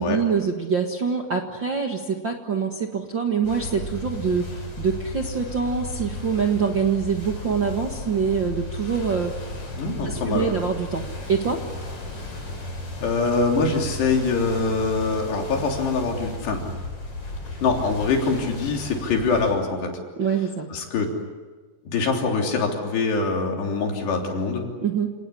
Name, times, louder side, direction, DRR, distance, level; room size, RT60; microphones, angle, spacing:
voice 1, 0.0-9.3 10.0-11.0 11.3-11.6 20.2-20.7 24.8-25.1, right 6 dB, 55° right, 2 dB, 1.3 m, -25 dB
sound 1, 3.4-19.5, left 2 dB, 35° left, 6.1 m, -35 dB
voice 2, 9.8-10.5 13.0-16.6 17.6-19.9 20.7-21.1 21.9-24.6, left 4 dB, 80° left, 1 dB, 5.5 m, -24 dB
29.0 x 19.0 x 9.9 m, 1.4 s
omnidirectional pair, 4.8 m